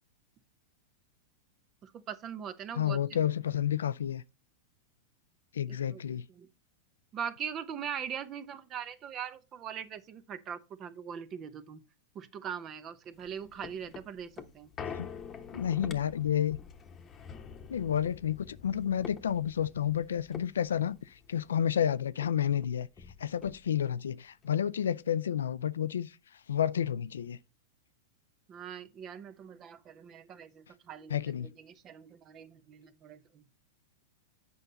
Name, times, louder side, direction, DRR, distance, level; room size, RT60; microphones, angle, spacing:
voice 1, 1.8-3.0 5.7-6.5 7.1-11.8 12.1-14.7 28.5-33.4, right 8 dB, 35° right, 0.8 m, -41 dB
voice 2, 2.8-4.2 5.5-6.2 14.9-15.1 15.5-16.6 17.7-22.9 23.2-26.2 26.5-27.4 31.1-31.5, left 9 dB, 90° left, 0.4 m, -30 dB
sound 1, 13.1-21.9 22.2-22.3 22.6-24.0 24.4-24.5, left 7 dB, 25° left, 1.0 m, -46 dB
8.1 x 5.5 x 3.9 m
hypercardioid pair, 120°, 0 cm